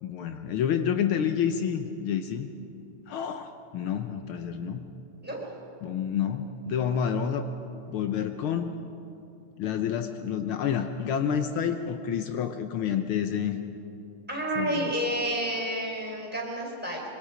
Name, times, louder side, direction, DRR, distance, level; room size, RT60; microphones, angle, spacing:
voice 1, 0.0-2.5 3.1-4.9 5.8-7.5 7.9-8.7 9.6-13.6 14.6-14.9, left 8 dB, 90° left, 7 dB, 1.1 m, -29 dB
voice 2, 14.3-17.0, right 1 dB, 5° right, -2 dB, 4.3 m, -30 dB
25.0 x 23.5 x 5.1 m, 2.8 s
omnidirectional pair, 3.4 m